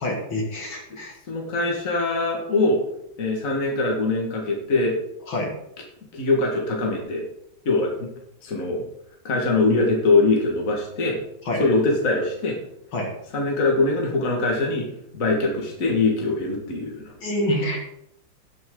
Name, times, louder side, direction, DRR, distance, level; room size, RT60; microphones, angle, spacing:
voice 1, 0.0-1.2 5.3-5.5 11.4-11.6 12.9-13.1 17.2-17.8, left 1 dB, 65° left, 0 dB, 2.9 m, -26 dB
voice 2, 1.3-2.8 3.2-5.0 6.1-7.2 7.7-7.9 8.4-8.8 9.2-11.2 11.6-12.6 13.3-14.9 15.1-17.0, left 3 dB, 40° left, 0 dB, 2.1 m, -22 dB
17.5 x 5.9 x 3.8 m, 0.78 s
omnidirectional pair, 2.3 m